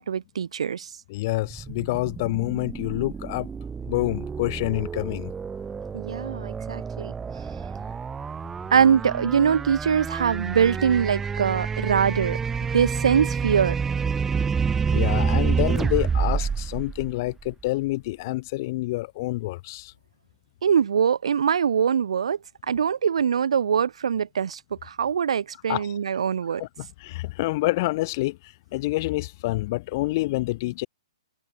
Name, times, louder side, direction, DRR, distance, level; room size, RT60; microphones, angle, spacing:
voice 1, 0.0-0.9 5.9-7.1 8.7-12.4 12.7-13.8 20.6-22.4 22.7-26.6, right 7 dB, 70° right, 1.0 m, -23 dB
voice 2, 1.1-3.5 3.9-5.3 14.9-19.9 25.7-25.8 26.6-30.9, left 19 dB, 35° left, 4.2 m, -27 dB
sound 1, 1.5-17.7, right 6 dB, 10° right, 2.1 m, -28 dB
hypercardioid pair, 155°, 3 cm